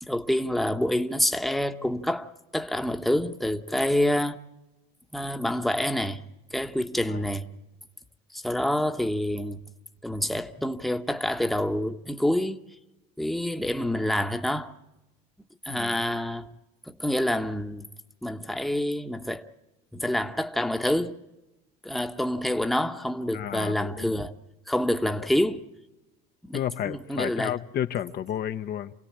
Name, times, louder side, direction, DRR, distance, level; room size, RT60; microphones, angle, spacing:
voice 1, 0.0-4.4 5.1-6.2 6.5-7.5 8.3-9.6 10.0-12.6 13.2-14.7 15.6-16.5 16.8-17.9 18.2-19.5 19.9-21.2 21.8-24.3 24.7-25.6 26.5-27.6, left 1 dB, ahead, 1.1 m, -27 dB
voice 2, 23.3-24.1 25.2-25.3 26.5-28.9, left 10 dB, 50° left, 0.9 m, -32 dB
28.0 x 17.0 x 8.7 m
supercardioid pair, 105°, 21 cm